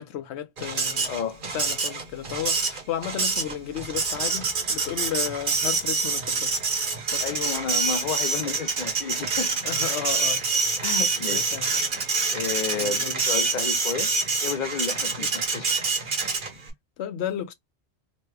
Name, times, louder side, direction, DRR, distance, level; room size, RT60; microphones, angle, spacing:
voice 1, 0.0-1.1 1.5-6.6 7.1-7.3 9.6-10.4 11.3-11.7 12.7-13.2 15.2-15.3 17.0-17.5, left 10 dB, 80° left, 0.9 m, -33 dB
Printer, 0.6-16.7, right 4 dB, 50° right, 1.0 m, -26 dB
voice 2, 1.1-1.4 7.2-9.6 10.8-11.5 12.3-14.1 14.4-15.7, left 6 dB, 55° left, 0.5 m, -31 dB
3.0 x 2.2 x 3.2 m
omnidirectional pair, 1.1 m